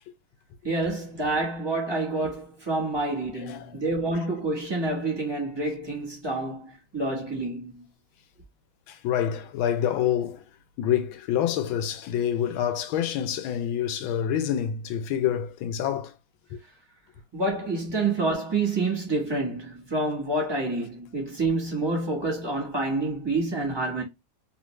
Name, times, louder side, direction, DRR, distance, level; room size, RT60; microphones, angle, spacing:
voice 1, 0.6-7.9 17.3-24.0, right 2 dB, 20° right, 0.7 m, -28 dB
voice 2, 8.9-10.4 10.8-16.1 16.5-16.6, left 10 dB, 75° left, 1.3 m, -27 dB
3.3 x 2.5 x 3.0 m
omnidirectional pair, 2.3 m